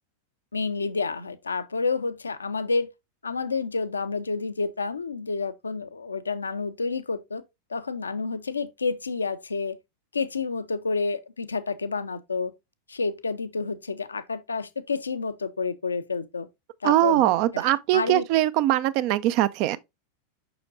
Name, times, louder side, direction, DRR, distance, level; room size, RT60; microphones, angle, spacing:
voice 1, 0.5-2.9 3.2-7.4 7.7-9.8 10.1-12.5 12.9-16.5 16.8-18.3, left 4 dB, 75° left, 0.6 m, -29 dB
voice 2, 16.8-19.8, right 15 dB, 45° right, 0.4 m, -22 dB
6.8 x 5.8 x 2.5 m
figure-of-eight pair, 90°, 0 cm